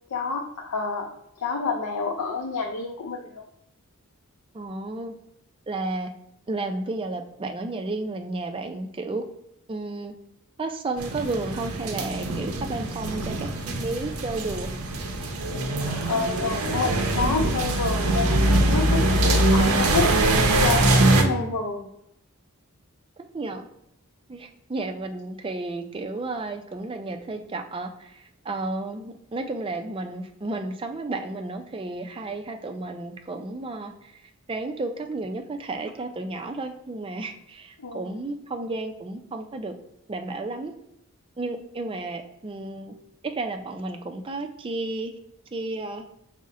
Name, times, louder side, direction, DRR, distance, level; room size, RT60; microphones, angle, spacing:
voice 1, 0.1-1.1 1.4-3.4 15.8-20.1 20.6-21.8 37.8-38.1, left 4 dB, 85° left, 2 dB, 0.5 m, -28 dB
voice 2, 4.5-5.1 5.7-6.1 6.5-9.2 9.7-10.1 10.6-14.7 21.2-21.5 23.3-23.6 24.3-34.2 34.5-39.8 40.1-40.7 41.4-42.9 43.2-45.1 45.5-46.1, right 2 dB, 25° right, 5 dB, 0.3 m, -32 dB
sound 1, 11.0-21.2, right 2 dB, 80° right, 0.7 m, -23 dB
5.4 x 2.1 x 3.6 m, 0.78 s
head